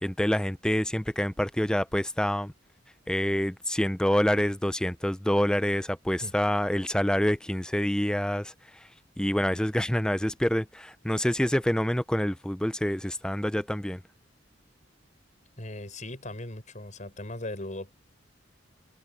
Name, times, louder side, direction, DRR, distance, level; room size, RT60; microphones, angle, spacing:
voice 1, 0.0-2.5 3.1-8.5 9.2-14.0, equal, 5° left, 0.5 m, -27 dB
voice 2, 15.6-17.9, left 1 dB, 40° left, 6.1 m, -38 dB
open air
head